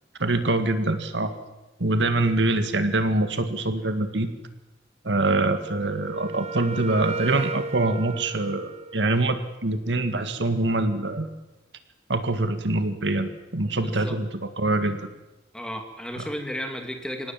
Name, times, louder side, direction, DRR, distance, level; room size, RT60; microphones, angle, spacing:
voice 1, 0.2-1.3 1.8-4.3 5.0-11.3 12.1-15.1 16.2-16.3, right 2 dB, 70° right, 9 dB, 1.9 m, -24 dB
Wind instrument woodwind instrument, 5.6-9.5, right 4 dB, 35° right, 0.8 m, -35 dB
voice 2, 13.8-14.2 15.5-17.3, equal, 5° left, 5 dB, 2.5 m, -33 dB
25.5 x 18.5 x 7.4 m, 1.0 s
head